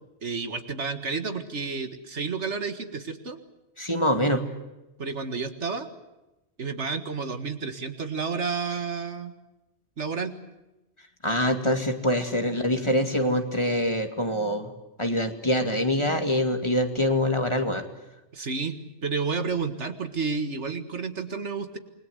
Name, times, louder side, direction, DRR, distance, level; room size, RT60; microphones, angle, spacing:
voice 1, 0.2-3.4 5.0-5.9 6.6-9.3 10.0-10.3 18.3-21.8, right 5 dB, 75° right, 9 dB, 2.1 m, -31 dB
voice 2, 3.8-4.4 11.2-14.7 15.0-17.8, equal, 25° left, 6 dB, 2.3 m, -25 dB
28.5 x 21.5 x 8.1 m, 0.99 s
omnidirectional pair, 1.2 m